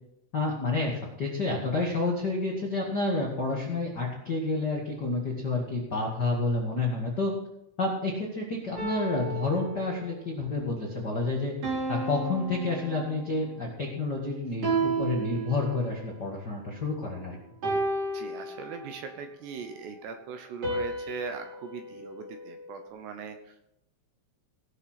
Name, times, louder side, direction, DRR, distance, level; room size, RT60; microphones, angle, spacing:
voice 1, 0.3-7.3 7.8-11.5 11.9-17.4, left 3 dB, 75° left, -2 dB, 0.9 m, -29 dB
sound 1, 8.8-10.3 11.6-13.5 14.6-16.1 17.6-19.1 20.6-22.9, right 3 dB, 35° right, 4.4 m, -33 dB
voice 2, 18.1-23.6, right 6 dB, 75° right, 6 dB, 2.7 m, -40 dB
18.5 x 6.8 x 5.9 m, 0.81 s
omnidirectional pair, 5.7 m